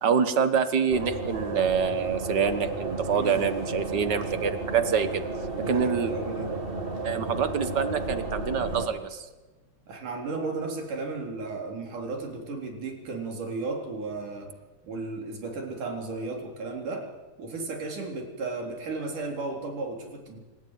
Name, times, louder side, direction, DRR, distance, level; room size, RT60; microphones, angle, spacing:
voice 1, 0.0-5.3 5.7-6.1 7.0-9.2, right 6 dB, 50° right, 11 dB, 1.3 m, -26 dB
sound 1, 0.9-8.9, right 2 dB, 20° right, 2.0 m, -33 dB
voice 2, 3.1-3.5 5.6-6.6 9.9-14.5 14.8-17.1 17.4-20.4, right 3 dB, 85° right, 2 dB, 5.3 m, -34 dB
27.0 x 14.0 x 9.3 m, 1.2 s
omnidirectional pair, 3.5 m